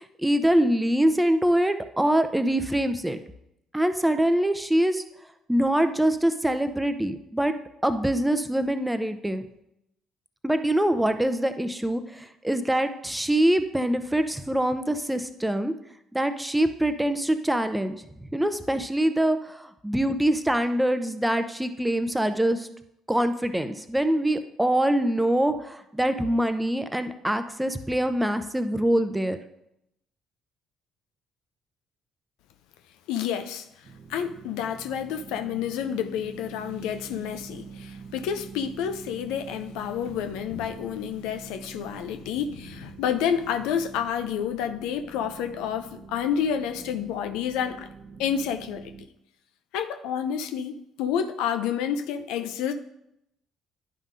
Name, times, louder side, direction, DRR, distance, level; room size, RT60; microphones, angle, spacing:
voice 1, 0.0-3.2 3.7-5.0 5.5-7.5 7.8-9.4 10.4-15.7 16.1-18.0 18.3-22.7 23.1-29.4, right 1 dB, 5° right, 9 dB, 0.6 m, -24 dB
voice 2, 33.1-33.6 34.1-47.9 48.2-48.9 49.7-52.7, left 8 dB, 70° left, 8 dB, 0.4 m, -29 dB
sound 1, 33.8-49.1, right 5 dB, 55° right, 0.7 m, -45 dB
11.0 x 5.3 x 2.5 m, 0.82 s
hypercardioid pair, 50°, 0 cm